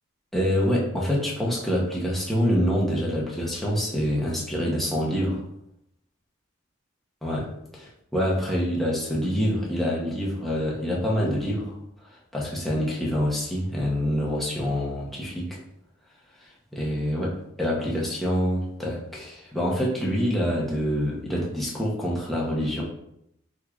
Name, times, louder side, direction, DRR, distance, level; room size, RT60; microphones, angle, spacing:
voice 1, 0.3-5.4 7.2-11.7 12.3-15.6 16.7-22.8, equal, ahead, -5 dB, 0.7 m, -26 dB
3.6 x 3.0 x 2.3 m, 0.76 s
head